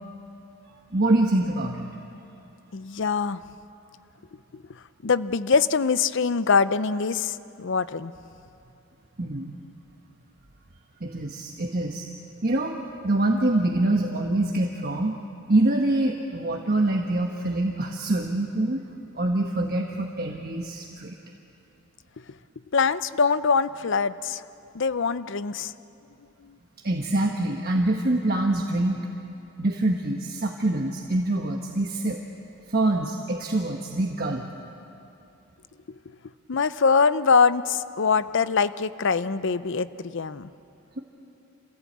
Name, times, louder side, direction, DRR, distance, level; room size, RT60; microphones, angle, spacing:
voice 1, 0.9-1.9 9.2-9.6 11.0-12.1 12.4-15.2 15.5-18.8 19.1-21.1 26.8-29.0 29.6-32.2 32.7-34.5, right 2 dB, 45° right, 1 dB, 1.3 m, -25 dB
voice 2, 2.7-3.4 4.5-4.6 5.0-8.1 22.7-24.4 24.7-25.7 26.4-26.6 36.5-40.5, left 5 dB, 60° left, 14 dB, 0.6 m, -23 dB
27.0 x 16.0 x 8.6 m, 2.7 s
head